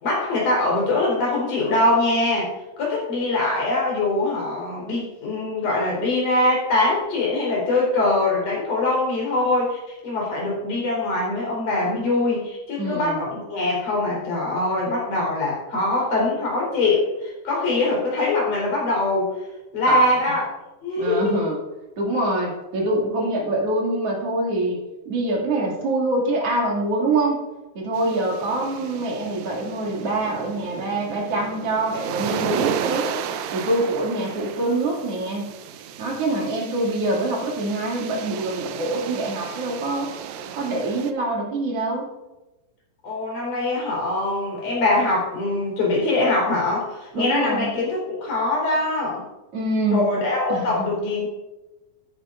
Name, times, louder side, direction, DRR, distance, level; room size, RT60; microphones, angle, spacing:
voice 1, 0.0-2.5 2.8-19.3 19.7-20.4 20.8-21.5 43.0-49.2 49.9-51.3, left 2 dB, 60° left, -4 dB, 5.6 m, -23 dB
voice 2, 12.8-13.2 19.9-20.0 21.0-21.6 22.0-24.8 25.1-27.4 27.7-33.1 33.5-35.5 36.0-40.1 40.5-42.1 47.1-47.7 49.5-50.1 50.5-50.9, right 2 dB, 45° right, -2 dB, 3.2 m, -25 dB
sound 1, 27.9-41.1, right 7 dB, 90° right, 1.6 m, -33 dB
14.5 x 10.0 x 2.6 m, 1.0 s
omnidirectional pair, 4.2 m